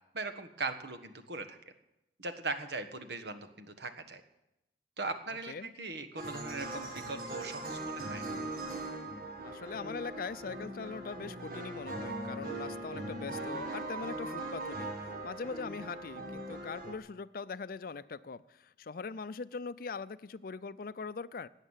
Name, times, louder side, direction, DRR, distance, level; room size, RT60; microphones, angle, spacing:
voice 1, 0.1-1.6 2.2-4.2 5.0-8.2, right 3 dB, 70° right, 8 dB, 1.4 m, -39 dB
sound 1, 6.2-17.0, right 2 dB, 55° right, 2.1 m, -40 dB
voice 2, 9.4-14.9 15.2-21.5, left 4 dB, 55° left, 16 dB, 0.5 m, -41 dB
17.5 x 9.0 x 7.4 m, 0.90 s
head